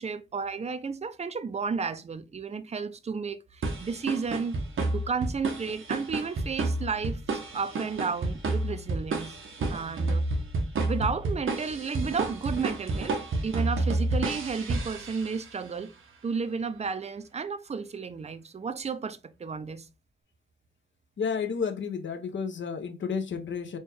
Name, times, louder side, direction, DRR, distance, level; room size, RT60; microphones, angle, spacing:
voice 1, 0.0-4.6 4.9-9.4 9.7-10.3 10.8-13.2 13.4-15.9 16.2-19.9, right 5 dB, 35° right, 0.4 m, -32 dB
sound 1, 3.6-15.6, right 2 dB, 90° right, 0.8 m, -30 dB
voice 2, 21.2-23.8, left 6 dB, 70° left, 0.6 m, -31 dB
4.2 x 2.2 x 3.1 m
wide cardioid pair, 135°, 20 cm